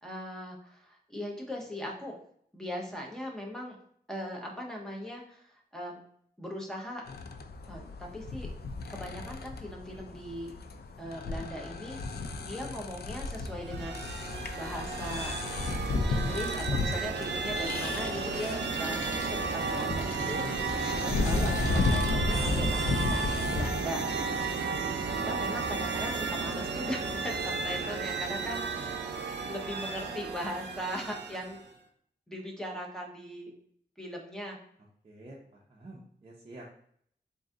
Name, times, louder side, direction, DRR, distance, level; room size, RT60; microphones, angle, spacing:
voice 1, 0.0-2.2 2.5-3.8 4.1-6.0 6.4-7.1 7.7-8.5 8.9-10.5 11.0-14.0 14.5-15.3 16.1-24.0 24.8-29.0 29.4-31.6 32.3-33.5 34.0-34.6, equal, 5° left, -1 dB, 0.8 m, -39 dB
sound 1, 7.1-23.8, left 3 dB, 65° left, 0.4 m, -34 dB
sound 2, 13.5-31.7, right 4 dB, 85° right, 0.5 m, -33 dB
sound 3, 17.2-22.1, left 1 dB, 45° left, 1.1 m, -47 dB
voice 2, 28.3-28.9 35.0-36.7, right 1 dB, 30° right, -3 dB, 0.6 m, -50 dB
3.8 x 2.6 x 3.7 m, 0.64 s
wide cardioid pair, 125°, 17 cm